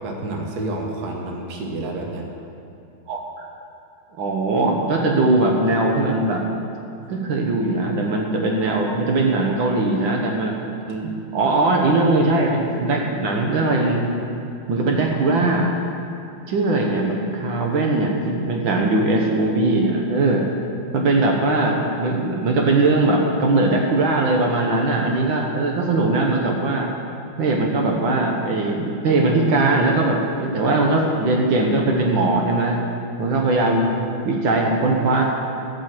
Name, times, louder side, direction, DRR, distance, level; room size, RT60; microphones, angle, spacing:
voice 1, 0.0-2.3 7.1-7.2, right 2 dB, 55° right, 1 dB, 1.6 m, -29 dB
voice 2, 4.2-6.4 7.1-10.5 10.9-14.0 14.7-15.8 16.5-20.5 20.9-26.9 27.4-32.8 33.2-34.0 34.3-35.2, right 2 dB, 70° right, 0 dB, 1.8 m, -20 dB
13.5 x 5.4 x 7.5 m, 2.6 s
omnidirectional pair, 2.3 m